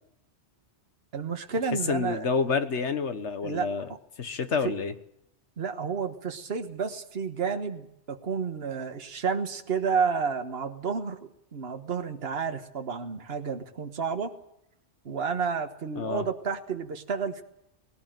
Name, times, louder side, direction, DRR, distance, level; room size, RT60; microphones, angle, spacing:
voice 1, 1.1-2.3 3.4-4.0 4.6-4.7 5.6-11.2 11.5-14.4 15.1-17.4, right 6 dB, 60° right, 6 dB, 1.6 m, -31 dB
voice 2, 1.9-3.9 4.2-4.9 16.0-16.2, left 5 dB, 80° left, 10 dB, 1.6 m, -28 dB
19.0 x 18.0 x 9.2 m, 0.76 s
omnidirectional pair, 1.2 m